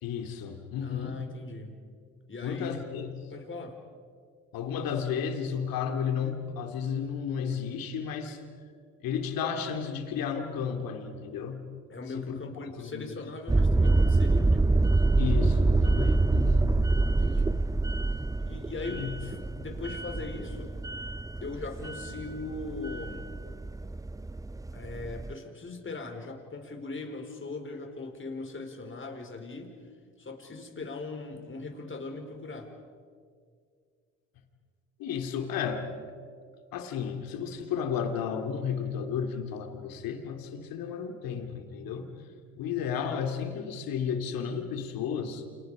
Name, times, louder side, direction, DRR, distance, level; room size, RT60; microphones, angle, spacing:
voice 1, 0.0-1.2 2.4-3.3 4.5-8.4 9.0-11.7 12.1-12.4 12.7-13.2 15.2-16.7 18.9-19.1 35.0-35.9 36.7-42.1 42.6-45.4, left 7 dB, 70° left, 6 dB, 2.7 m, -33 dB
voice 2, 0.8-1.8 2.3-2.8 3.3-3.8 11.9-14.7 17.0-17.7 18.4-20.7 21.4-23.4 24.7-29.7 30.2-32.7, left 3 dB, 35° left, 3 dB, 4.6 m, -40 dB
sound 1, 13.5-25.3, right 2 dB, 10° right, 0.7 m, -26 dB
29.5 x 27.0 x 5.0 m, 2.1 s
hypercardioid pair, 60°, 36 cm